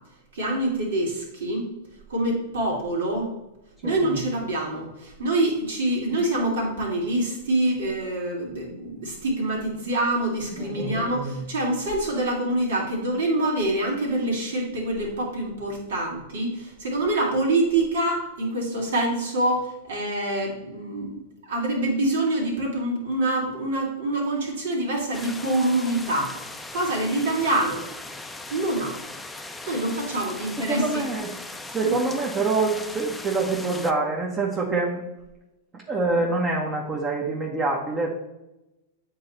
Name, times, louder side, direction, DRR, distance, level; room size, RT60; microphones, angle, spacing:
voice 1, 0.3-1.7 2.1-3.3 3.8-21.2 21.4-26.4 26.7-27.9 28.5-29.0 29.7-31.0 31.8-32.0, right 1 dB, 75° right, -1 dB, 2.7 m, -25 dB
voice 2, 10.6-11.1 30.7-31.3 31.7-35.0 35.9-38.1, right 3 dB, 25° right, -1 dB, 1.2 m, -26 dB
sound 1, 25.1-33.9, left 2 dB, 5° left, 0.6 m, -39 dB
8.6 x 4.0 x 4.3 m, 0.96 s
hypercardioid pair, 110°, 0 cm